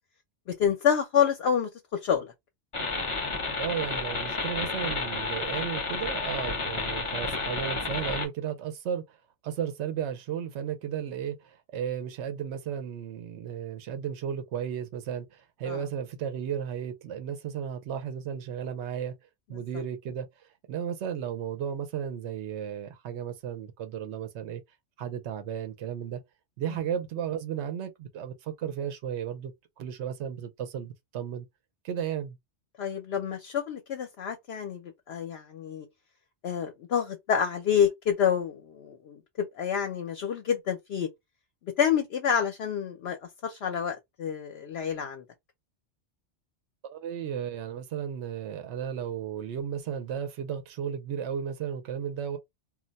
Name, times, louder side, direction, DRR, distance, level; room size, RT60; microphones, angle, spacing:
voice 1, 0.5-2.3 15.7-15.8 32.8-35.9 36.4-41.1 41.8-45.2, left 8 dB, 65° left, 0.8 m, -28 dB
sound 1, 2.7-8.3, left 3 dB, 30° left, 0.7 m, -31 dB
voice 2, 3.6-9.2 9.4-19.1 19.5-20.3 20.7-24.6 25.0-26.2 26.6-31.5 31.8-32.4 46.8-52.4, right 8 dB, 75° right, 0.9 m, -34 dB
2.3 x 2.1 x 3.9 m
omnidirectional pair, 1.2 m